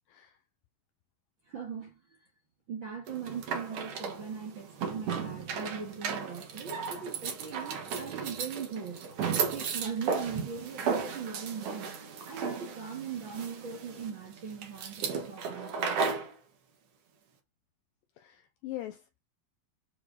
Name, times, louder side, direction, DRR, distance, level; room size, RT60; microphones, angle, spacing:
voice 1, 1.5-2.2 2.7-9.1 9.5-16.0, right 6 dB, 45° right, 1.7 m, -40 dB
sound 1, 3.1-16.3, right 6 dB, 65° right, 1.5 m, -35 dB
voice 2, 18.2-19.2, left 14 dB, 85° left, 2.0 m, -42 dB
7.9 x 4.6 x 4.8 m
omnidirectional pair, 4.6 m